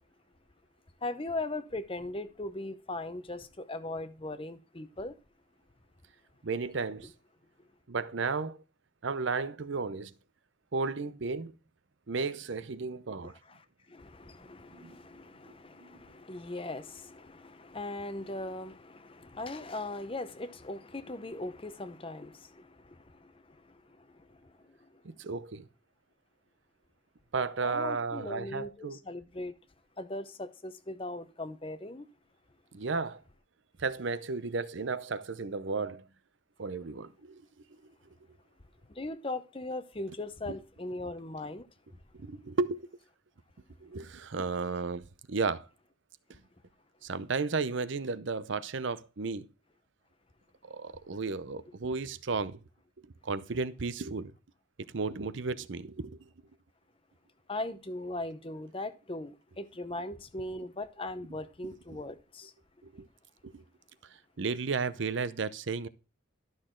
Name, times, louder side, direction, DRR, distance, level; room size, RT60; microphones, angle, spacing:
voice 1, 1.0-5.1 13.2-13.6 13.9-22.6 27.6-29.5 30.0-32.0 39.0-41.6 57.5-62.5, left 2 dB, 25° left, 0.7 m, -39 dB
voice 2, 6.4-7.1 7.9-8.6 9.0-10.1 10.7-11.5 12.1-13.3 14.7-15.0 15.5-16.0 25.0-25.7 27.3-29.0 32.7-33.2 33.8-36.1 36.6-37.4 37.8-37.9 40.5-40.6 42.1-42.9 43.8-45.7 46.3-46.4 47.0-49.5 50.6-52.6 53.0-54.3 54.9-56.3 61.6-61.7 62.8-63.1 63.4-63.6 64.4-65.9, right 4 dB, 65° right, 0.6 m, -34 dB
12.0 x 6.4 x 3.7 m
head